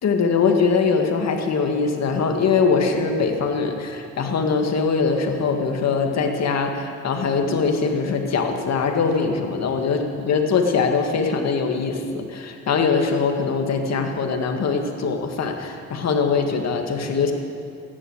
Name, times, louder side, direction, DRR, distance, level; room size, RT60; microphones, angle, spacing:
voice 1, 0.0-17.3, left 5 dB, 60° left, 4 dB, 2.0 m, -22 dB
15.5 x 11.0 x 8.1 m, 2.5 s
cardioid pair, 90°, 30 cm